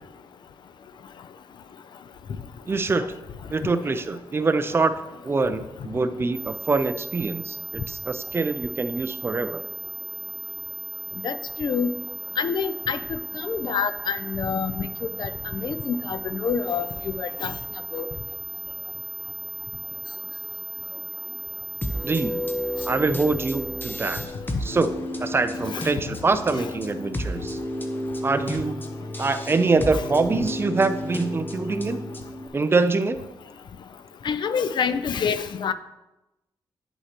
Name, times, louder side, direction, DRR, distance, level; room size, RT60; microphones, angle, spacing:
voice 1, 2.7-3.1 3.5-4.9 5.2-9.6 22.0-22.4 22.8-24.2 24.6-27.6 28.2-28.8 29.2-32.0 32.5-33.2, right 3 dB, 30° right, 10 dB, 0.5 m, -24 dB
sound 1, 6.3-24.3, right 7 dB, 55° right, 1.2 m, -36 dB
voice 2, 11.2-11.9 12.4-14.9 15.2-17.5 17.9-18.1 25.6-25.9 26.5-26.7 29.9-30.0 34.2-35.7, left 7 dB, 65° left, 12 dB, 0.5 m, -27 dB
sound 2, 21.8-32.5, left 1 dB, 25° left, 0.9 m, -32 dB
9.6 x 8.0 x 2.9 m, 0.98 s
cardioid pair, 110°, 9 cm